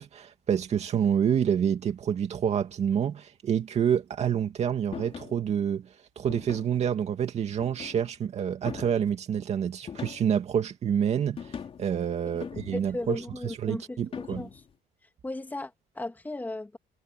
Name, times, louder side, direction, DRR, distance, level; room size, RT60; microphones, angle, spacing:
voice 1, 0.0-5.9 6.2-14.5, right 8 dB, 40° right, 2.3 m, -28 dB
sound 1, 4.9-5.4 6.3-6.8 7.6-8.2 8.7-9.1 9.9-10.4 11.4-11.9 12.4-13.0 14.1-14.7, left 7 dB, 30° left, 4.4 m, -41 dB
voice 2, 12.7-14.6 15.2-16.8, left 2 dB, 10° left, 2.8 m, -36 dB
cardioid pair, 180°, 18 cm